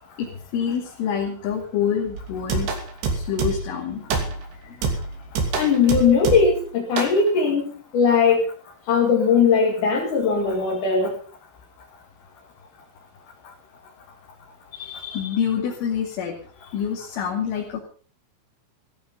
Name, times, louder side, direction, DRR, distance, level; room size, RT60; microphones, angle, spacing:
voice 1, 0.2-2.7 3.1-5.1 14.7-16.4 16.7-17.8, left 8 dB, 80° left, -1 dB, 5.1 m, -27 dB
sound 1, 2.2-3.8 4.1-4.5 4.8-6.6 7.0-7.2, right 4 dB, 60° right, 4.8 m, -26 dB
voice 2, 5.6-7.6 7.9-8.4 8.9-11.1, left 5 dB, 50° left, -1 dB, 3.4 m, -19 dB
16.5 x 14.5 x 5.4 m, 0.43 s
omnidirectional pair, 5.5 m